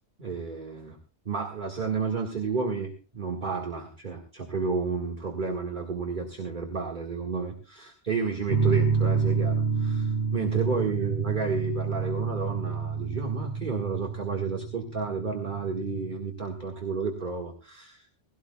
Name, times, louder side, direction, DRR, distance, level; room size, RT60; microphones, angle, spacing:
voice 1, 0.2-1.0 1.3-18.1, right 4 dB, 50° right, 2 dB, 2.0 m, -31 dB
sound 1, 8.5-16.1, right 5 dB, 70° right, 3.8 m, -28 dB
19.0 x 16.5 x 2.3 m, 0.30 s
omnidirectional pair, 1.1 m